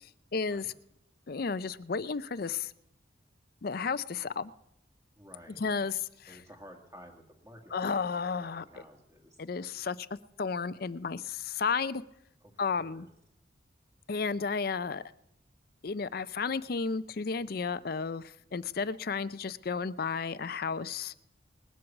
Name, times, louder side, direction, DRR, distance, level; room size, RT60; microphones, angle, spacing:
voice 1, 0.3-0.7 1.3-2.7 3.6-4.5 5.6-6.0 6.3-6.4 7.7-8.6 9.4-10.1 10.4-12.0 12.6-13.1 14.1-15.0 15.8-21.1, left 5 dB, 50° left, 15 dB, 0.5 m, -32 dB
voice 2, 5.2-5.9 6.3-9.4 12.4-13.1, equal, 15° right, 2 dB, 1.8 m, -53 dB
20.5 x 7.8 x 7.2 m, 0.83 s
head